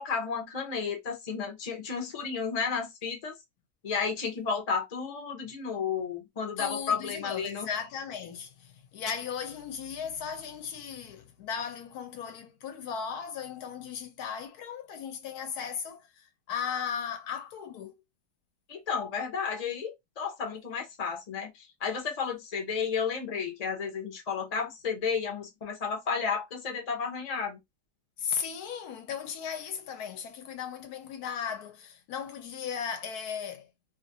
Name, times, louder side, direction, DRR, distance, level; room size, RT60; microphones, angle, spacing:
voice 1, 0.0-3.3 3.8-7.7 18.7-27.6, left 6 dB, 45° left, 0.5 m, -32 dB
voice 2, 6.6-17.9 28.2-33.7, left 7 dB, 75° left, 1.0 m, -36 dB
2.6 x 2.5 x 2.5 m
omnidirectional pair, 1.8 m